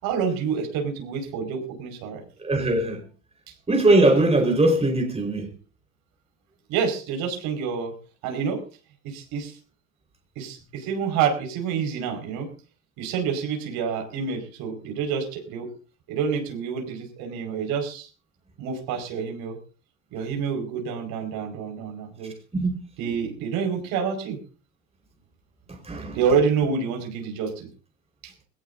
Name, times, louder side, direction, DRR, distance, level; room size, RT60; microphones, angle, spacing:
voice 1, 0.0-2.2 6.7-7.9 8.2-8.6 9.0-9.6 10.3-12.5 13.0-15.7 16.1-18.1 18.6-19.6 20.1-22.3 23.0-24.4 26.1-27.7 28.2-28.3, right 6 dB, 60° right, 5.1 m, -27 dB
voice 2, 2.4-3.0 3.7-5.5 22.5-22.8 25.7-26.2, right 2 dB, 15° right, 4.4 m, -21 dB
21.0 x 18.0 x 2.6 m
hypercardioid pair, 90°, 40 cm